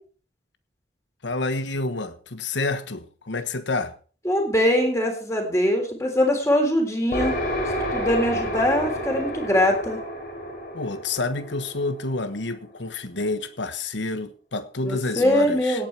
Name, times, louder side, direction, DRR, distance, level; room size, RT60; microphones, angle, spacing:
voice 1, 1.2-3.9 10.7-15.8, left 2 dB, 80° left, 1.3 m, -29 dB
voice 2, 4.3-7.4 7.9-10.0 14.8-15.9, left 1 dB, 15° left, 3.5 m, -22 dB
sound 1, 7.1-12.7, equal, 50° left, 4.5 m, -30 dB
17.0 x 8.8 x 4.6 m
head